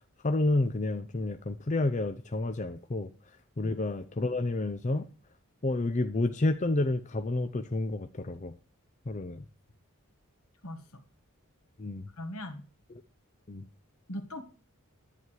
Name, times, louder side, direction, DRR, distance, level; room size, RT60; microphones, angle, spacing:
voice 1, 0.2-3.1 3.6-5.1 5.6-8.5 9.1-9.4 11.8-12.1 13.5-13.7, left 2 dB, 35° left, 8 dB, 0.6 m, -30 dB
voice 2, 10.6-11.0 12.2-12.6 14.1-14.4, left 1 dB, 80° left, 8 dB, 1.7 m, -39 dB
11.0 x 9.4 x 4.8 m, 0.35 s
head